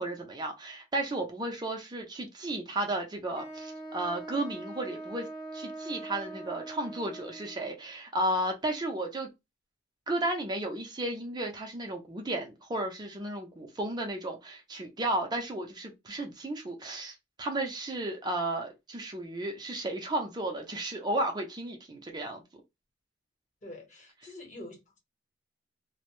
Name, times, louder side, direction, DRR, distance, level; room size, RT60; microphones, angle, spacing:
voice 1, 0.0-5.3 5.5-9.3 10.1-22.4, right 1 dB, 25° right, 0.5 m, -33 dB
Wind instrument woodwind instrument, 3.3-7.8, right 2 dB, 10° left, 0.8 m, -42 dB
voice 2, 23.6-25.0, left 1 dB, 40° left, 1.0 m, -46 dB
2.6 x 2.0 x 3.0 m
head